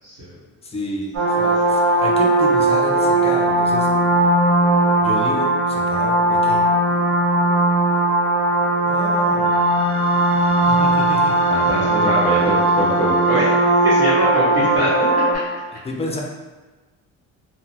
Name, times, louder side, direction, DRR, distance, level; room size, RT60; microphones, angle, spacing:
voice 1, 0.0-0.3 10.5-11.0 11.5-13.5 13.8-14.9 15.2-15.4, equal, 50° right, -11 dB, 1.3 m, -23 dB
voice 2, 0.6-1.1 1.4-3.9 5.0-6.6 8.9-9.6 10.7-11.5 15.7-16.2, left 1 dB, 20° left, 0 dB, 0.4 m, -30 dB
sound 1, 1.1-15.4, right 2 dB, 70° right, 1.3 m, -18 dB
3.8 x 2.1 x 2.8 m, 1.2 s
cardioid pair, 130°, 32 cm